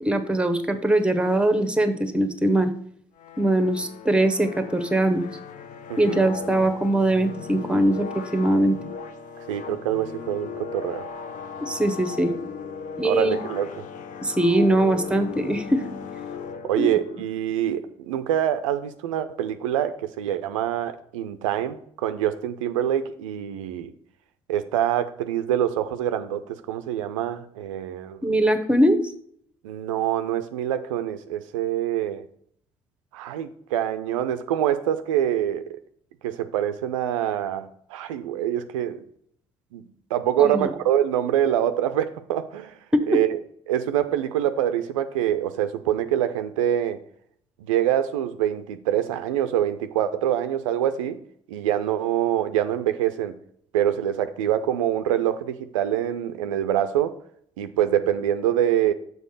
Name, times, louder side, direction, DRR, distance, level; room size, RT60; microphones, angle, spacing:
voice 1, 0.0-2.7 3.4-5.2 6.0-8.8 11.6-12.3 13.0-13.4 14.2-15.8 16.7-16.9 28.2-29.0 40.4-40.7 42.9-43.0, right 1 dB, 5° right, 9 dB, 1.0 m, -21 dB
sound 1, 3.2-17.3, left 6 dB, 50° left, 0.7 m, -37 dB
voice 2, 5.9-6.3 9.5-11.1 13.0-13.7 16.6-23.9 24.5-28.2 29.6-32.2 33.1-35.8 36.2-39.0 39.7-39.8 40.1-42.7 43.1-43.4 43.7-47.0 47.7-51.2 51.5-53.4 53.7-57.2 57.6-58.9, right 11 dB, 75° right, 10 dB, 0.5 m, -25 dB
6.9 x 4.1 x 6.5 m, 0.64 s
figure-of-eight pair, 50°, 17 cm